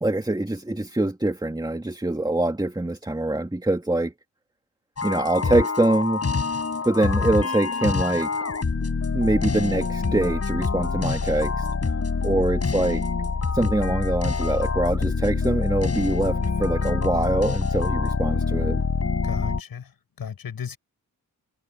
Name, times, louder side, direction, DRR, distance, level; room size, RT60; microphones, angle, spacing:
voice 1, 0.0-4.1 5.0-6.2 6.8-8.3 9.1-12.0 12.2-13.0 13.5-18.8, right 2 dB, 10° right, 2.4 m, -24 dB
sound 1, 5.0-19.6, left 4 dB, 40° left, 6.9 m, -25 dB
voice 2, 19.2-20.8, left 7 dB, 75° left, 6.4 m, -35 dB
cardioid pair, 75°, 36 cm